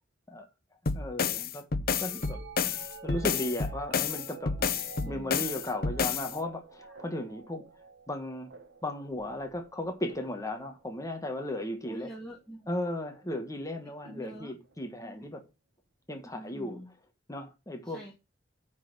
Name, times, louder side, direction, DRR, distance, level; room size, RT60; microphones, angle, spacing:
sound 1, 0.9-6.3, left 5 dB, 55° left, 0.7 m, -30 dB
voice 1, 0.9-1.7 2.0-2.7 3.0-4.6 5.1-7.6 8.1-8.5 8.8-12.1 12.7-15.4 16.1-16.8 17.3-18.0, left 1 dB, 20° left, 1.4 m, -36 dB
sound 2, 1.8-11.9 12.9-13.3 14.0-15.0 16.8-16.9, right 4 dB, 80° right, 1.3 m, -50 dB
voice 2, 5.0-5.4 6.9-7.0 11.8-12.8 14.0-14.5 15.0-15.3 16.3-16.9 17.8-18.1, right 1 dB, 5° left, 2.2 m, -45 dB
9.3 x 4.2 x 6.7 m
head